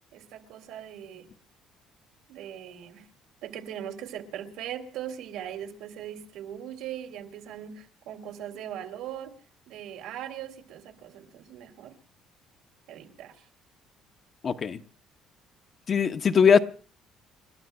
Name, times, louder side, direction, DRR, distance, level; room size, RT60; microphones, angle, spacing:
voice 1, 0.1-1.3 2.3-3.1 3.4-9.3 9.7-11.9 12.9-13.4, right 10 dB, 80° right, 4 dB, 2.8 m, -40 dB
voice 2, 14.4-14.8 15.9-16.6, left 6 dB, 35° left, 10 dB, 0.7 m, -20 dB
30.0 x 13.5 x 2.3 m, 0.39 s
cardioid pair, 150°, 0 cm